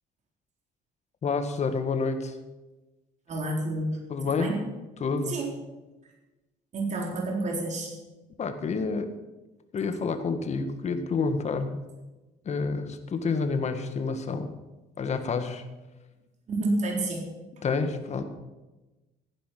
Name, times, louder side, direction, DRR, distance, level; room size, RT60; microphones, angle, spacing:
voice 1, 1.2-2.4 4.1-4.5 5.0-5.3 8.4-9.1 9.7-11.8 12.5-14.5 15.0-15.6 17.6-18.2, left 4 dB, 40° left, 8 dB, 1.8 m, -28 dB
voice 2, 3.3-4.0 4.4-4.6 5.3-5.5 6.7-7.9 16.5-17.2, right 2 dB, 45° right, 0 dB, 3.9 m, -29 dB
15.5 x 10.0 x 5.9 m, 1.1 s
cardioid pair, 110°, 17 cm